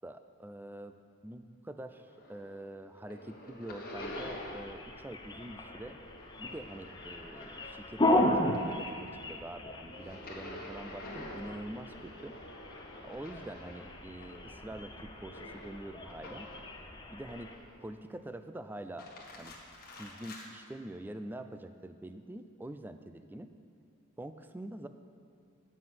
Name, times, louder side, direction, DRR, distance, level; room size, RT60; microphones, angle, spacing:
voice 1, 0.0-0.9 1.2-6.0 6.4-12.4 13.0-16.5 17.1-17.5 17.8-19.1 19.4-19.6 20.0-23.5 24.2-24.9, right 1 dB, 10° right, 9 dB, 0.3 m, -45 dB
sound 1, 1.9-2.6 2.9-4.9 5.2-8.1 8.4-16.8 17.3-17.9 18.8-20.5, left 1 dB, 45° left, 1.3 m, -48 dB
sound 2, 3.9-17.6, left 1 dB, 20° left, 0.7 m, -36 dB
9.3 x 5.9 x 7.6 m, 2.5 s
head